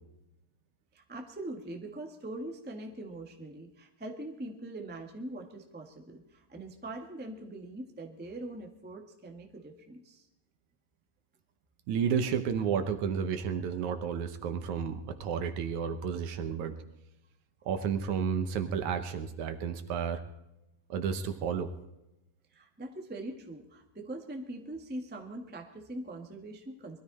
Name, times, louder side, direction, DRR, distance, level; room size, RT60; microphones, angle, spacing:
voice 1, 0.9-10.3 22.5-27.0, right 1 dB, 10° right, 2 dB, 0.6 m, -42 dB
voice 2, 11.9-16.8 17.7-20.2 20.9-21.7, right 7 dB, 70° right, 8 dB, 2.1 m, -31 dB
22.0 x 13.0 x 4.2 m, 0.93 s
omnidirectional pair, 3.9 m